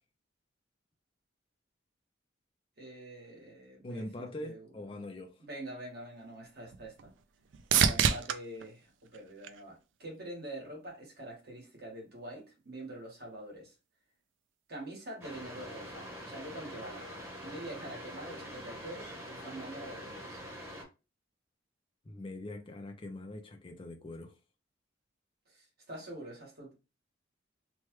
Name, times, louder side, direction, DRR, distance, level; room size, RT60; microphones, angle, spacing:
voice 1, 2.8-4.0 4.4-4.6 5.4-7.1 7.8-13.7 14.7-17.1 17.4-20.4 25.5-26.7, right 1 dB, 55° right, 1.5 m, -45 dB
voice 2, 3.8-5.4 22.0-24.3, left 1 dB, 30° left, 0.5 m, -43 dB
sound 1, 6.0-10.2 10.7-11.3 19.1-19.2, right 7 dB, 75° right, 0.4 m, -32 dB
sound 2, 15.2-20.8, equal, 15° right, 1.1 m, -45 dB
3.1 x 2.3 x 3.0 m
head